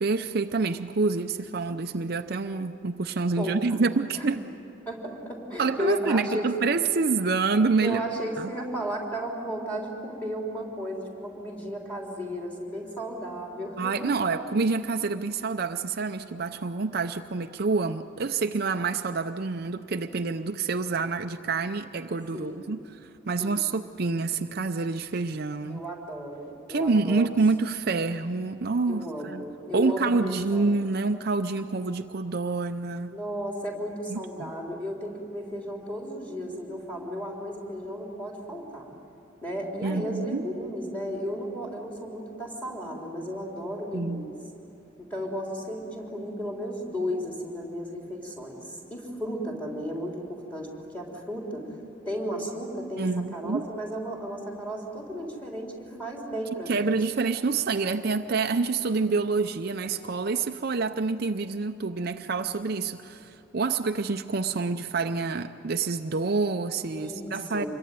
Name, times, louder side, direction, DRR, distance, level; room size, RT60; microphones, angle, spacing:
voice 1, 0.0-4.5 5.6-8.0 8.4-8.5 13.8-25.8 26.7-29.5 29.7-33.2 34.1-34.5 39.8-40.4 43.9-44.3 53.0-53.6 56.7-67.6, right 4 dB, 50° right, 7 dB, 0.6 m, -27 dB
voice 2, 3.4-3.8 4.1-4.3 4.9-6.5 7.8-14.4 22.3-22.7 23.4-23.6 25.7-27.3 28.9-30.7 33.1-38.9 39.4-44.3 45.0-51.7 52.1-56.9 66.9-67.7, equal, 5° left, -1 dB, 3.8 m, -34 dB
26.5 x 22.0 x 9.5 m, 2.8 s
head